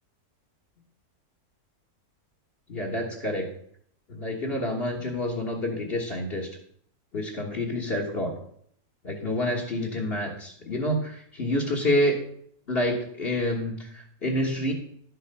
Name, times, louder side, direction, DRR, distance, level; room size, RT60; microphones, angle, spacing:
voice 1, 2.7-3.4 4.1-6.5 7.1-8.3 9.0-12.2 12.7-14.7, left 1 dB, 40° left, 2 dB, 1.7 m, -28 dB
11.5 x 6.6 x 5.3 m, 0.64 s
omnidirectional pair, 1.6 m